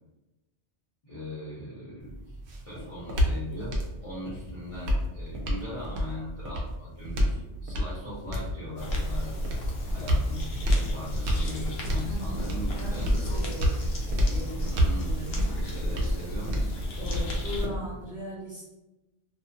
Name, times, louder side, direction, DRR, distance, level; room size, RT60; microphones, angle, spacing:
voice 1, 1.0-2.4 2.6-3.7 4.0-9.3 9.8-13.6 14.2-14.4 14.7-15.2 15.5-16.7 17.0-17.3, left 1 dB, 35° left, -9 dB, 0.7 m, -40 dB
sound 1, 2.0-18.0, equal, 70° right, 0.8 m, -30 dB
sound 2, 8.8-17.7, equal, 65° left, 0.8 m, -32 dB
voice 2, 12.0-13.9 14.3-15.5 17.0-18.7, equal, 15° right, -8 dB, 1.1 m, -39 dB
2.4 x 2.2 x 2.5 m, 1.0 s
omnidirectional pair, 1.2 m